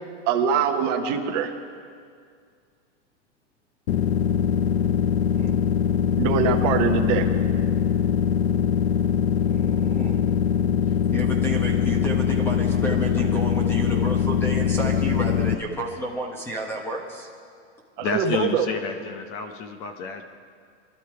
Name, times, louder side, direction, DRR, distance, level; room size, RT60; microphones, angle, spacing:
voice 1, 0.3-1.5 6.2-7.2 18.0-18.7, right 7 dB, 35° right, 2 dB, 1.1 m, -23 dB
sound 1, 3.9-15.5, left 8 dB, 60° left, 0.8 m, -22 dB
voice 2, 5.1-5.6 9.5-10.2 10.9-17.3, equal, 5° left, 0 dB, 1.0 m, -31 dB
voice 3, 18.0-20.2, left 5 dB, 30° left, 7 dB, 0.8 m, -29 dB
21.5 x 12.5 x 4.8 m, 2.1 s
supercardioid pair, 160°, 36 cm